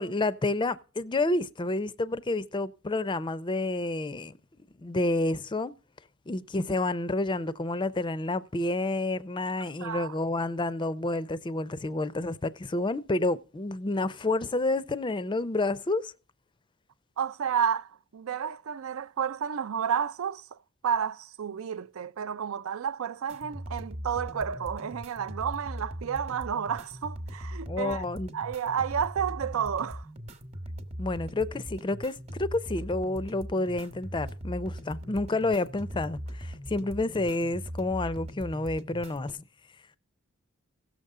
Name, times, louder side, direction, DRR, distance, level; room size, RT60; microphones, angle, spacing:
voice 1, 0.0-4.4 4.8-5.7 6.3-16.1 27.6-28.3 31.0-39.4, left 2 dB, 20° left, 0.5 m, -29 dB
voice 2, 9.8-10.1 17.2-20.4 20.8-28.0 28.3-30.0, right 7 dB, 65° right, 0.4 m, -31 dB
sound 1, 23.3-39.3, equal, 30° right, 1.0 m, -40 dB
16.5 x 6.7 x 3.6 m
head